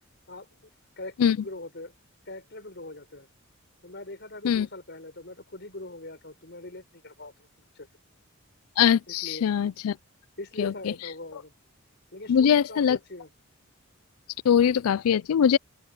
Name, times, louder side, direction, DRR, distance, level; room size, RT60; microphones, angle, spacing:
voice 1, 0.3-0.7 1.0-1.9 2.2-3.3 3.8-7.3 7.7-7.9 9.1-9.4 10.4-11.5 12.1-13.3, left 2 dB, 50° left, 6.6 m, -41 dB
voice 2, 8.8-10.0 10.6-10.7 12.3-13.0 14.4-15.6, left 8 dB, 85° left, 0.4 m, -22 dB
open air
head